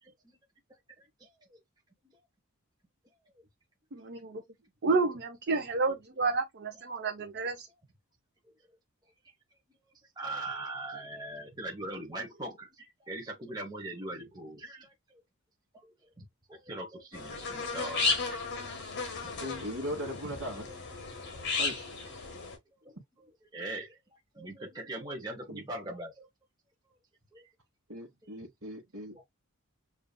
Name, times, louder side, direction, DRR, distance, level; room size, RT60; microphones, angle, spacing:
voice 1, 0.0-0.3 1.0-1.6 2.0-2.2 4.9-5.0 9.2-9.3 10.2-14.9 15.7-18.7 19.2-19.3 20.3-20.8 21.3-21.6 22.0-23.3 23.5-26.3 27.3-27.5 28.2-28.5 29.1-29.2, right 2 dB, 20° right, 0.9 m, -42 dB
voice 2, 3.9-4.4 4.8-7.7, right 3 dB, 50° right, 0.7 m, -30 dB
sound 1, 17.1-22.6, left 4 dB, 50° left, 1.5 m, -34 dB
voice 3, 19.4-20.7 21.6-21.9 25.5-25.6 27.9-29.2, equal, 70° right, 1.3 m, -39 dB
6.8 x 2.7 x 2.2 m
head